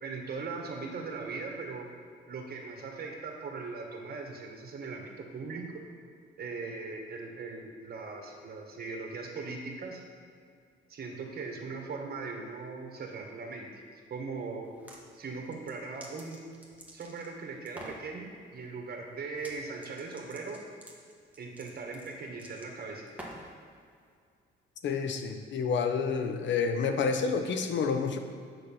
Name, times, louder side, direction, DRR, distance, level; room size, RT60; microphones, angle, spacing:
voice 1, 0.0-1.9 2.3-5.8 6.4-10.0 10.9-14.7 15.1-16.4 16.9-20.6 21.4-23.1, right 4 dB, 50° right, 1 dB, 1.5 m, -39 dB
sound 1, 14.6-15.0 15.5-17.3 17.7-18.0 19.3-19.6 19.8-23.6, right 1 dB, 5° right, 1.4 m, -48 dB
voice 2, 24.8-28.2, left 5 dB, 65° left, 7 dB, 0.8 m, -29 dB
6.9 x 5.9 x 5.6 m, 2.2 s
cardioid pair, 90°, 20 cm